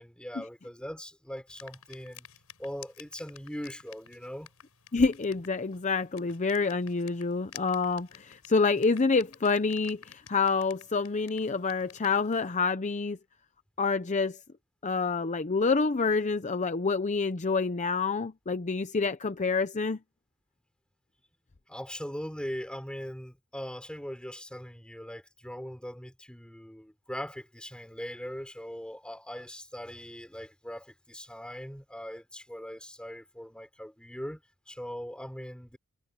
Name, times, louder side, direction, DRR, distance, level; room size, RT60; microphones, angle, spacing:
voice 1, 0.0-2.3 2.6-4.5 21.7-34.4 34.7-35.8, equal, 5° left, 5.4 m, -40 dB
sound 1, 1.5-12.6, left 10 dB, 80° left, 6.0 m, -53 dB
voice 2, 4.9-13.2 13.8-14.4 14.8-20.0, left 4 dB, 35° left, 0.7 m, -27 dB
head